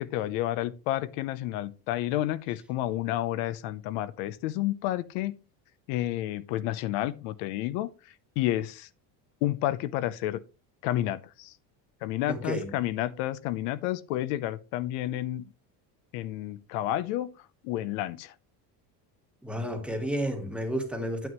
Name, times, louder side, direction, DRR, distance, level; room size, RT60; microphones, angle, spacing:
voice 1, 0.0-5.3 5.9-7.9 8.4-8.9 9.4-10.4 10.8-11.5 12.0-15.5 16.1-17.3 17.6-18.3, left 14 dB, 70° left, 0.8 m, -30 dB
voice 2, 12.3-12.7 19.4-21.3, equal, 5° right, 1.2 m, -31 dB
9.3 x 9.2 x 3.1 m
cardioid pair, 175°, 40 cm